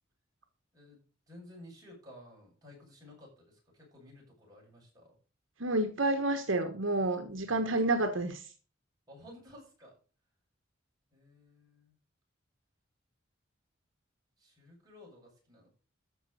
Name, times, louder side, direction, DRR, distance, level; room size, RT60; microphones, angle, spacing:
voice 1, 1.3-5.2 7.4-7.9 9.1-9.9 11.1-11.9 14.4-15.7, left 1 dB, 20° right, 7.5 m, -54 dB
voice 2, 5.6-8.5, right 2 dB, 65° right, 1.4 m, -29 dB
14.0 x 5.8 x 6.7 m
head